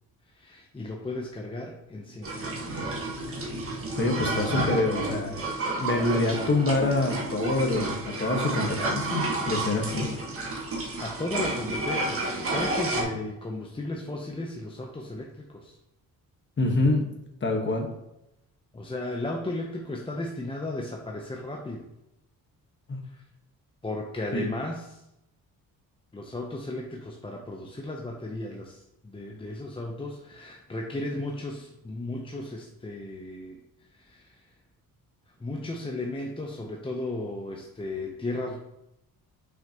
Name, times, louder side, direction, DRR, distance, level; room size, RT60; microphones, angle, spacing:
voice 1, 0.3-3.1 11.0-15.8 18.7-21.9 23.0-23.2 23.8-25.0 26.1-33.6 33.9-34.4 35.4-38.6, left 2 dB, 15° left, 0 dB, 0.7 m, -35 dB
sound 1, 2.2-13.0, right 2 dB, 40° right, 1.5 m, -31 dB
voice 2, 4.0-5.4 5.8-7.9 8.2-10.1 16.6-17.0 17.4-17.9 22.9-23.0 24.3-24.5, left 2 dB, 30° left, 2 dB, 1.4 m, -26 dB
6.0 x 5.7 x 2.9 m, 0.87 s
cardioid pair, 95°, 35 cm